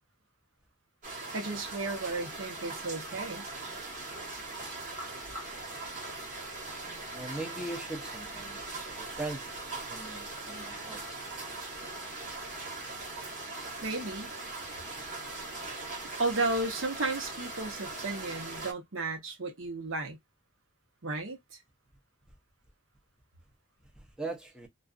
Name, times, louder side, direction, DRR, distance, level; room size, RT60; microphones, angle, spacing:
sound 1, 1.0-18.7, right 2 dB, 40° right, 1.1 m, -40 dB
voice 1, 1.3-3.5 13.8-14.3 15.7-20.2 21.0-21.4, right 2 dB, 90° right, 1.0 m, -34 dB
voice 2, 7.1-8.7 9.2-9.6 9.9-11.0 24.2-24.7, right 2 dB, 5° right, 0.6 m, -39 dB
2.4 x 2.4 x 2.4 m
head